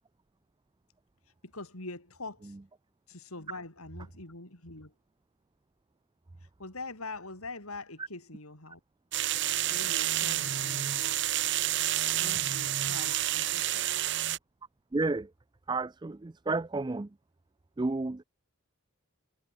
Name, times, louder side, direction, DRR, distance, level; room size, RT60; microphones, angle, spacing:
voice 1, 1.4-2.6 3.1-4.9 6.4-8.8 9.7-10.9 12.2-13.9, left 3 dB, 85° left, 6.3 m, -44 dB
sound 1, 9.1-14.4, right 13 dB, 55° right, 1.1 m, -29 dB
voice 2, 14.9-15.3 15.7-17.1 17.8-18.2, right 3 dB, 20° right, 0.4 m, -31 dB
head